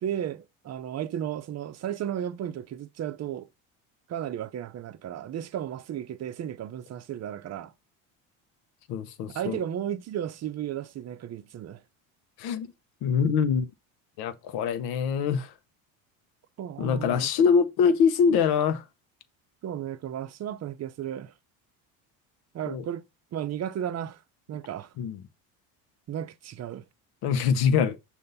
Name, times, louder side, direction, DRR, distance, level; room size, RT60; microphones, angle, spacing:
voice 1, 0.0-3.5 4.1-7.7 9.3-11.8 16.6-17.3 19.6-21.3 22.5-23.1 23.3-24.2 24.5-24.9 26.1-26.8, right 10 dB, 40° right, 0.7 m, -34 dB
voice 2, 8.9-9.6 12.4-12.7 13.0-13.7 14.2-15.5 16.8-18.8 22.7-22.8 25.0-25.2 27.2-28.0, left 6 dB, 65° left, 0.9 m, -24 dB
6.5 x 2.7 x 5.4 m
supercardioid pair, 95°, 41 cm